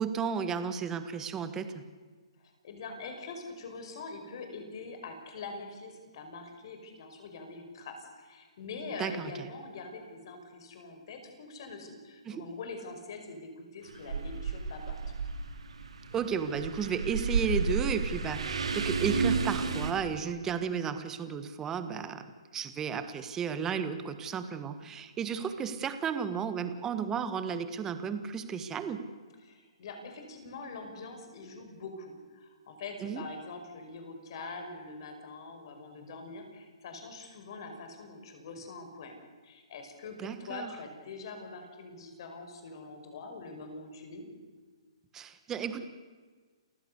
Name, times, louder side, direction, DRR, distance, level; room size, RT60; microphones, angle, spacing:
voice 1, 0.0-1.8 9.0-9.3 12.2-12.5 16.1-22.3 22.5-29.0 33.0-33.2 40.2-40.7 45.1-45.9, right 7 dB, 15° right, 10 dB, 1.5 m, -33 dB
voice 2, 2.4-15.0 24.8-24.9 29.4-39.2 39.4-44.2, left 3 dB, 50° left, 5 dB, 5.5 m, -44 dB
sound 1, 13.9-19.9, right 4 dB, 90° right, 3.3 m, -32 dB
28.5 x 15.5 x 8.3 m, 1.5 s
hypercardioid pair, 155°, 3 cm